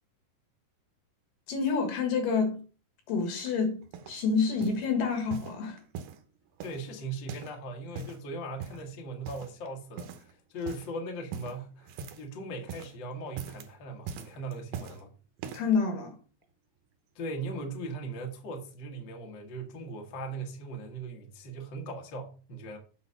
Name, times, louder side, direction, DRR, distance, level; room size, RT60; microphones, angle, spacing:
voice 1, 1.5-2.6 3.1-5.8 15.5-16.2, left 5 dB, 70° left, 3.2 m, -28 dB
sound 1, 3.5-4.2 4.6-4.9 5.3-6.2 6.6-7.6 7.8-8.2 8.6-8.9 9.3-9.7 10.0-10.3 10.6-10.9 11.3-12.3 12.6-13.0 13.3-13.7 14.1-15.0 15.4-15.8 16.4-16.5, right 6 dB, 80° right, 2.6 m, -42 dB
voice 2, 6.6-15.1 17.1-22.8, right 2 dB, 50° left, 1.6 m, -39 dB
8.1 x 4.1 x 5.4 m
omnidirectional pair, 3.9 m